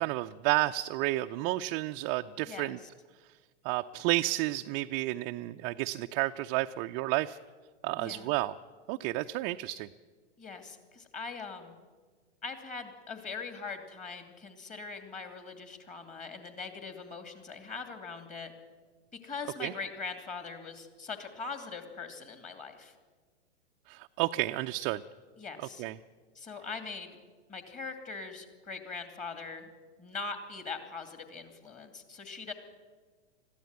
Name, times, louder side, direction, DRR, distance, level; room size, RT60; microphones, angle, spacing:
voice 1, 0.0-2.8 3.6-7.4 7.8-8.5 8.9-9.9 19.6-19.7 23.9-25.0 25.8-26.0, right 18 dB, 30° right, 6 dB, 0.5 m, -31 dB
voice 2, 2.5-2.9 8.0-8.3 10.4-11.7 12.4-18.5 19.2-22.9 25.4-25.8 26.3-27.1 27.5-29.7 30.0-32.5, left 4 dB, 20° left, 7 dB, 2.6 m, -41 dB
21.5 x 14.5 x 9.2 m, 1.4 s
figure-of-eight pair, 100°, 36 cm